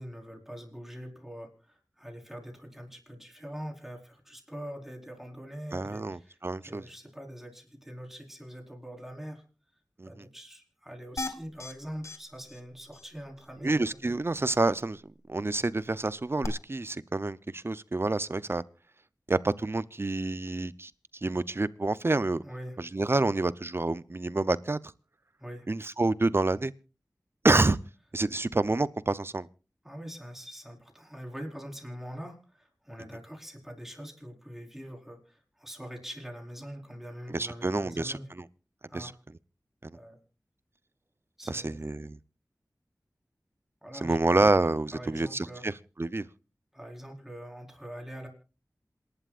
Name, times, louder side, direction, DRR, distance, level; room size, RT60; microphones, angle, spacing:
voice 1, 0.0-6.4 6.6-9.4 10.1-14.0 22.4-22.8 25.4-25.7 29.8-38.3 38.9-39.1 39.9-40.2 41.4-41.8 43.8-44.2 44.9-45.7 46.7-48.3, equal, 5° right, 4.4 m, -43 dB
voice 2, 5.7-6.8 10.0-10.1 13.6-15.0 15.3-18.6 19.3-20.9 21.2-22.4 22.8-24.8 25.7-26.7 27.4-27.8 28.1-29.5 37.3-38.4 38.9-39.1 39.8-39.9 41.5-42.2 44.0-45.7 46.0-46.3, right 2 dB, 40° right, 0.6 m, -28 dB
sound 1, 11.2-11.7 12.0-12.2 12.5-12.6 12.9-13.0 16.4-16.5, left 2 dB, 50° left, 1.4 m, -35 dB
27.0 x 11.5 x 2.5 m
wide cardioid pair, 50°, 6 cm